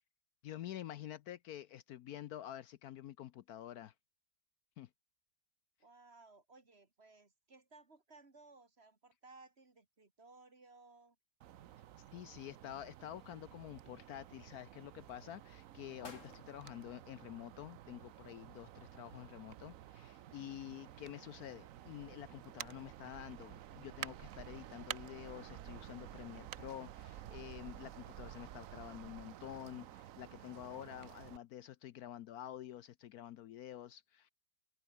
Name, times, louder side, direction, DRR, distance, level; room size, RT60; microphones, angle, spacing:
voice 1, 0.4-3.9 4.8-4.9 12.1-34.3, left 12 dB, 70° left, 1.1 m, -49 dB
voice 2, 5.8-11.2, right 3 dB, 35° right, 2.6 m, -60 dB
sound 1, 11.4-31.4, right 12 dB, 60° right, 1.0 m, -51 dB
sound 2, 12.3-13.1 13.5-14.3 14.9-15.2 15.7-15.8 16.0-17.9 18.2-18.3, left 3 dB, 45° left, 3.8 m, -58 dB
omnidirectional pair, 1.8 m